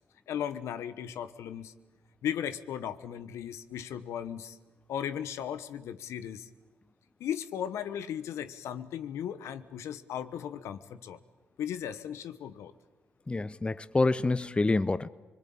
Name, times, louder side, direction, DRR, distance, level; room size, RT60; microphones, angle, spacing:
voice 1, 0.3-1.7 2.2-4.6 4.9-6.5 7.2-11.2 11.6-12.7, left 9 dB, 75° left, 1.1 m, -36 dB
voice 2, 13.3-15.1, left 3 dB, 20° left, 0.7 m, -27 dB
24.5 x 21.5 x 8.8 m
supercardioid pair, 55°, 5 cm